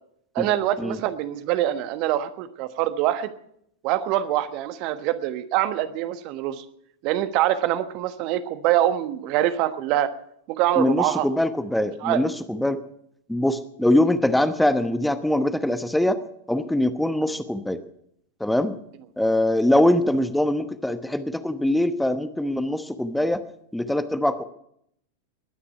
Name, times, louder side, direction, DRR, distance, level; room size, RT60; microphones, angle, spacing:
voice 1, 0.3-3.3 3.8-6.6 7.0-10.1 10.6-11.3 12.0-12.2, right 13 dB, 40° right, 11 dB, 1.2 m, -24 dB
voice 2, 10.8-12.8 13.3-16.2 16.5-17.8 18.4-18.8 19.2-23.4 23.7-24.4, left 1 dB, 5° left, 11 dB, 1.0 m, -23 dB
20.5 x 10.0 x 5.9 m, 0.71 s
figure-of-eight pair, 90°, 0 cm